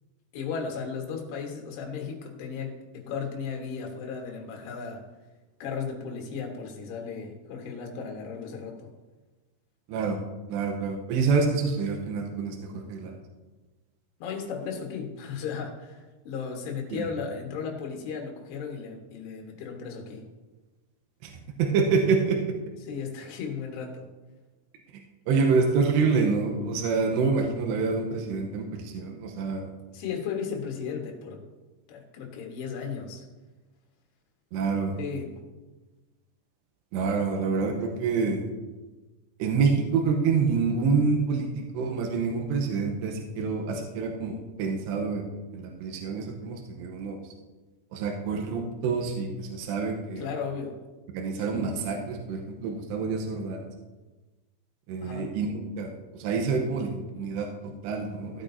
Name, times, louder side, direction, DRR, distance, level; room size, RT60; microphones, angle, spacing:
voice 1, 0.3-5.0 5.6-8.9 14.2-20.3 22.8-24.1 29.9-31.4 31.9-33.2 35.0-35.3 50.2-50.8 51.4-51.8 55.0-55.3, left 6 dB, 70° left, 1 dB, 3.3 m, -35 dB
voice 2, 9.9-10.2 10.5-13.1 16.9-17.1 21.2-21.3 21.6-22.4 25.3-29.7 34.5-35.0 36.9-38.4 39.4-45.3 45.5-47.2 47.9-50.3 51.1-53.6 54.9-58.4, right 4 dB, 80° right, 1 dB, 2.9 m, -27 dB
16.0 x 8.7 x 2.7 m, 1.2 s
omnidirectional pair, 5.3 m